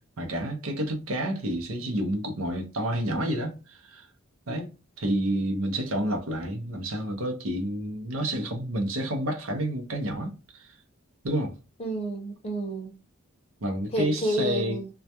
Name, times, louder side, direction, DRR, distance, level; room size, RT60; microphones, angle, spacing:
voice 1, 0.2-4.1 4.5-4.7 5.0-10.7 11.2-11.5 13.6-14.8, right 1 dB, 70° right, 0.6 m, -29 dB
voice 2, 11.8-13.0 13.9-14.9, equal, 25° left, 0.6 m, -30 dB
2.3 x 2.1 x 2.7 m
head